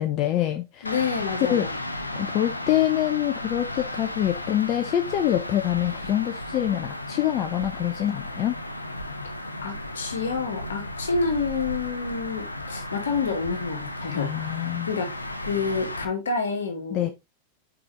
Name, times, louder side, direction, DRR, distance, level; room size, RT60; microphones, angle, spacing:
voice 1, 0.0-0.9 1.5-1.7 2.1-8.6 14.2-14.9 16.9-17.1, left 12 dB, 35° left, 0.7 m, -25 dB
voice 2, 0.8-1.8 9.6-17.1, left 4 dB, 65° left, 1.9 m, -29 dB
sound 1, 0.9-16.1, left 1 dB, 85° left, 0.8 m, -34 dB
6.0 x 5.2 x 3.1 m
figure-of-eight pair, 90°, 0 cm